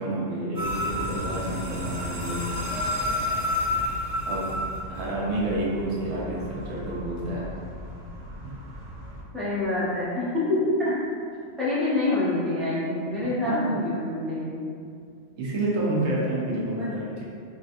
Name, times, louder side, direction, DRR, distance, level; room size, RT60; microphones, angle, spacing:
voice 1, 0.0-2.4 4.2-4.6 4.9-7.5 8.4-8.5 13.4-13.7 15.4-17.2, right 1 dB, 85° right, -5 dB, 1.1 m, -29 dB
sound 1, 0.5-9.2, left 1 dB, 55° right, 0.4 m, -31 dB
voice 2, 9.3-10.9 11.6-14.6 16.7-16.8, left 2 dB, ahead, -10 dB, 0.5 m, -26 dB
3.2 x 2.4 x 2.5 m, 2.3 s
omnidirectional pair, 1.3 m